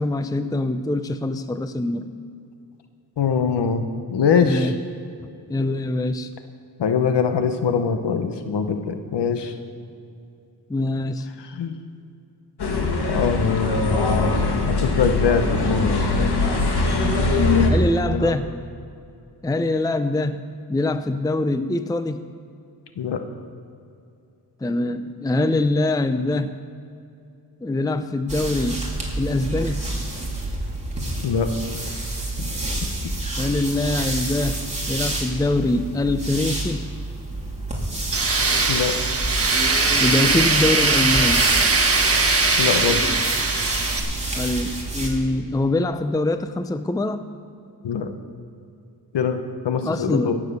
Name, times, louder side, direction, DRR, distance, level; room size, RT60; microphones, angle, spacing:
voice 1, 0.0-2.1 4.4-4.7 5.5-6.3 10.7-11.3 17.7-18.6 19.4-22.3 24.6-26.6 27.6-28.9 29.2-29.9 33.4-34.6 34.9-36.9 40.0-41.5 44.3-47.3 49.8-50.4, left 2 dB, 10° left, 10 dB, 0.6 m, -23 dB
voice 2, 3.2-4.7 6.8-9.5 11.4-11.8 13.1-16.4 18.1-18.3 23.0-23.2 31.2-31.5 38.7-38.9 42.6-43.0 47.8-48.1 49.1-50.4, left 6 dB, 90° left, 8 dB, 1.0 m, -23 dB
sound 1, 12.6-17.7, left 3 dB, 70° left, 1.9 m, -21 dB
sound 2, 28.3-45.1, right 2 dB, 15° right, 3.3 m, -29 dB
Tools, 38.1-44.0, right 3 dB, 35° right, 1.6 m, -20 dB
17.5 x 7.5 x 6.7 m, 2.5 s
cardioid pair, 75°, 40 cm